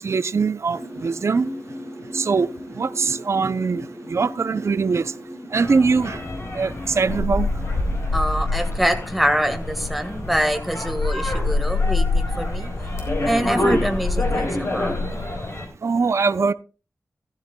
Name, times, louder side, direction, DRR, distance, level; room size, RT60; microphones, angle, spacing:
voice 1, 0.0-1.5 2.1-2.5 2.8-5.1 5.5-6.2 6.5-7.5 15.8-16.5, right 4 dB, 55° right, 0.4 m, -22 dB
sound 1, 0.7-9.6, equal, 40° left, 5.5 m, -39 dB
sound 2, 5.6-15.7, left 2 dB, 55° left, 4.6 m, -25 dB
voice 2, 8.1-12.7 13.2-15.2, equal, ahead, 1.5 m, -25 dB
14.5 x 14.0 x 2.2 m
wide cardioid pair, 100°, 6 cm